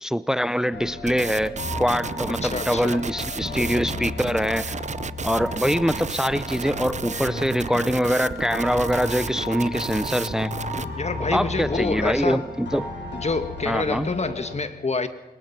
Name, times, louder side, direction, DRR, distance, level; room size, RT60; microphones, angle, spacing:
voice 1, 0.0-4.7 5.2-10.5 11.3-12.9 13.7-14.1, equal, 5° right, 16 dB, 0.7 m, -24 dB
sound 1, 0.7-14.5, left 2 dB, 85° left, 6.8 m, -34 dB
sound 2, 1.1-10.9, right 5 dB, 40° right, 0.7 m, -33 dB
voice 2, 2.4-3.0 10.8-12.4 13.1-15.1, left 3 dB, 40° left, 10 dB, 1.8 m, -27 dB
22.0 x 20.0 x 6.0 m, 1.1 s
cardioid pair, 55°, 17 cm